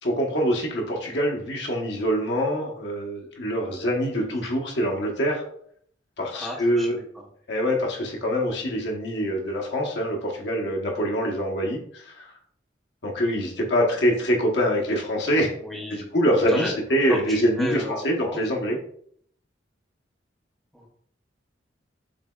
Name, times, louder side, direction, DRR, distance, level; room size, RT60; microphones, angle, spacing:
voice 1, 0.0-5.4 6.2-7.0 7.5-12.3 13.0-15.5 15.9-18.8, equal, 65° left, 0 dB, 1.1 m, -25 dB
voice 2, 6.3-7.2 15.6-16.0 16.5-16.7 17.1-18.4 20.7-20.9, left 1 dB, ahead, -3 dB, 0.8 m, -32 dB
6.7 x 3.3 x 2.4 m, 0.64 s
head